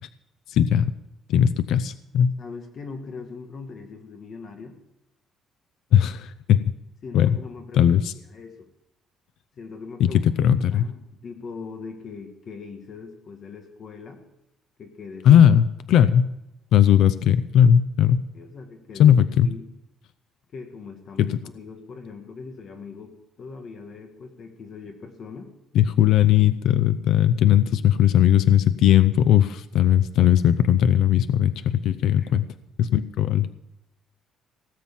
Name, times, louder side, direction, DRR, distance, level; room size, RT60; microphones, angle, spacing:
voice 1, 0.5-0.9 1.3-2.4 5.9-6.6 7.1-7.4 7.7-8.1 10.0-10.1 10.4-10.8 15.2-16.3 16.7-18.2 19.0-19.5 21.2-21.4 25.7-32.5 32.8-33.5, left 10 dB, 60° left, 14 dB, 0.5 m, -18 dB
voice 2, 2.4-4.8 7.0-8.7 9.5-10.2 10.7-14.2 14.8-15.5 18.3-19.1 19.4-19.6 20.5-25.5 32.2-32.3, left 4 dB, 35° left, 5 dB, 1.6 m, -40 dB
18.0 x 7.5 x 7.3 m, 0.91 s
cardioid pair, 175°, 0 cm